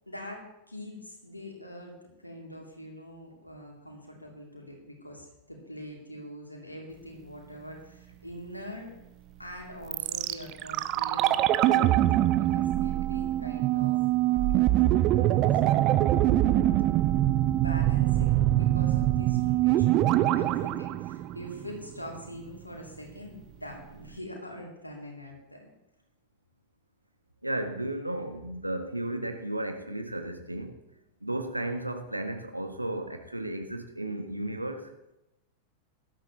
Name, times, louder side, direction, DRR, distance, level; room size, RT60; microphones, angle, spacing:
voice 1, 0.1-8.9 9.4-12.0 12.4-14.6 14.9-15.8 16.2-17.2 17.6-25.7, equal, 85° left, 0 dB, 3.1 m, -44 dB
sound 1, 9.9-21.9 22.2-22.3, right 14 dB, 40° right, 0.6 m, -24 dB
voice 2, 27.4-30.8 31.2-34.9, right 1 dB, 85° right, 6 dB, 1.3 m, -34 dB
18.0 x 12.0 x 3.1 m, 0.90 s
figure-of-eight pair, 90°, 0 cm